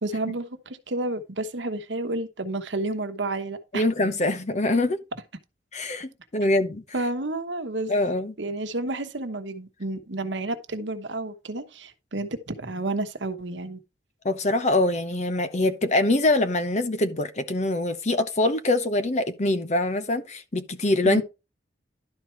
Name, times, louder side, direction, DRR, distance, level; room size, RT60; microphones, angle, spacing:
voice 1, 0.0-3.9 6.9-7.9 8.4-13.8 21.0-21.2, right 2 dB, 85° right, 1.1 m, -30 dB
voice 2, 3.7-5.0 5.7-6.8 7.9-8.3 14.2-21.2, left 2 dB, 40° left, 0.9 m, -24 dB
11.5 x 4.5 x 4.5 m
head